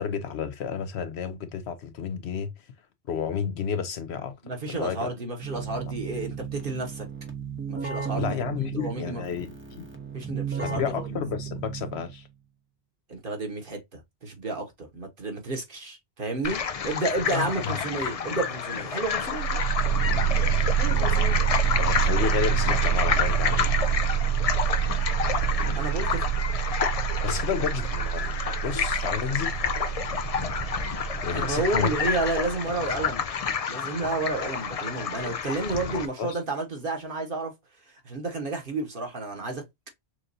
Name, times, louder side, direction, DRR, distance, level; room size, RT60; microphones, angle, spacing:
voice 1, 0.0-2.7 3.1-4.4 4.6-5.1 8.2-9.9 10.6-12.3 17.3-17.8 21.8-23.7 27.2-28.3 28.6-29.5 31.2-31.9 32.4-32.5 32.9-33.0 36.2-36.4, left 7 dB, 75° left, 1.1 m, -31 dB
voice 2, 4.4-7.1 7.7-9.2 10.1-11.1 13.1-19.6 20.8-21.4 25.8-26.2 31.3-33.2 33.7-37.5 38.0-39.6, right 3 dB, 50° right, 1.5 m, -31 dB
Keyboard (musical), 5.4-12.3, right 7 dB, 15° right, 0.7 m, -35 dB
sound 1, 16.4-36.1, left 7 dB, 55° left, 0.4 m, -29 dB
sound 2, 19.1-32.5, right 9 dB, 85° right, 0.9 m, -27 dB
6.2 x 2.6 x 2.6 m
omnidirectional pair, 1.1 m